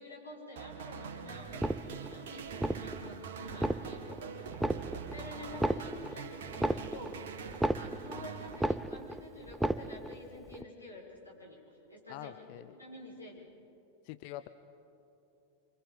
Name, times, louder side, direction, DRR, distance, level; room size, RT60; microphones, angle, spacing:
voice 1, 0.0-7.2 7.7-13.5, left 1 dB, 85° left, -4 dB, 6.0 m, -49 dB
sound 1, 0.6-9.1, right 6 dB, 55° right, 1.8 m, -44 dB
sound 2, 1.5-2.2 2.5-3.1 3.5-4.2 4.5-5.2 5.5-8.2 8.5-9.2 9.5-10.2 10.5-10.6, right 1 dB, 5° right, 0.5 m, -33 dB
voice 2, 12.1-12.7 14.0-14.5, left 15 dB, 45° left, 11 dB, 0.6 m, -44 dB
28.0 x 25.5 x 5.1 m, 2.9 s
figure-of-eight pair, 90°, 0 cm